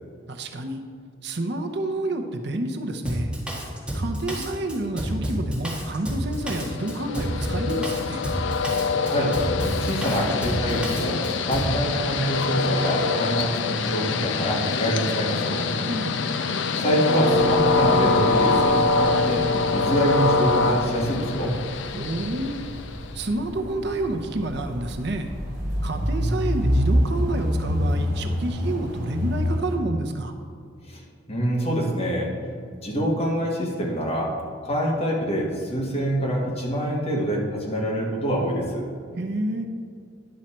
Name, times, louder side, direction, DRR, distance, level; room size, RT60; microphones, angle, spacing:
voice 1, 0.3-0.8 1.2-3.3 3.9-8.2 15.9-16.2 21.9-22.5 23.1-25.3 25.8-30.3 39.2-39.6, right 2 dB, 55° right, 5 dB, 0.7 m, -29 dB
Drum kit, 3.1-11.7, equal, 5° right, 1.8 m, -29 dB
Train, 6.5-23.2, left 3 dB, 65° left, 0.5 m, -24 dB
voice 2, 9.0-9.4 9.8-15.7 16.8-19.4 19.7-21.6 30.9-31.0 31.3-32.3 32.8-34.3 34.6-38.9, equal, 30° left, -2 dB, 1.5 m, -25 dB
sound 1, 17.3-29.7, equal, 40° right, 2.4 m, -28 dB
10.5 x 6.4 x 4.3 m, 2.2 s
head